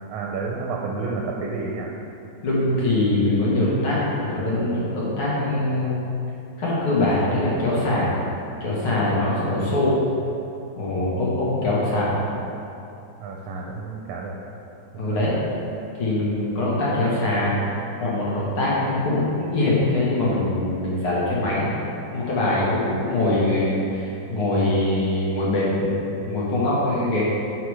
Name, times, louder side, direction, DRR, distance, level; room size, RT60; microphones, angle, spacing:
voice 1, 0.1-1.9 13.2-14.4 15.1-15.4, right 4 dB, 75° right, 0 dB, 1.4 m, -30 dB
voice 2, 2.4-6.0 6.6-8.1 8.6-9.9 10.8-12.1 15.0-15.3 15.9-21.7 22.1-27.2, left 2 dB, 85° left, -7 dB, 2.4 m, -23 dB
8.3 x 4.9 x 4.8 m, 2.8 s
omnidirectional pair, 2.3 m